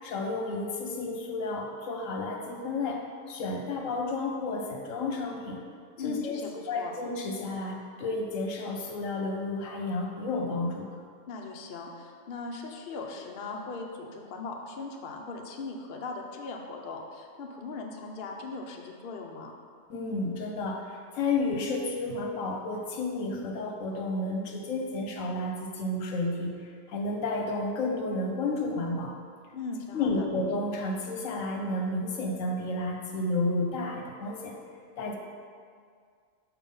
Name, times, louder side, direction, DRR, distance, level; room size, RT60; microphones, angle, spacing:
voice 1, 0.0-5.6 6.0-10.9 19.9-26.5 26.9-29.2 29.9-34.5 35.0-35.2, left 2 dB, 80° left, 2 dB, 1.2 m, -31 dB
voice 2, 6.0-6.9 11.3-19.5 29.5-30.3, left 3 dB, 50° left, 1 dB, 0.8 m, -39 dB
5.9 x 4.5 x 5.4 m, 2.1 s
omnidirectional pair, 1.4 m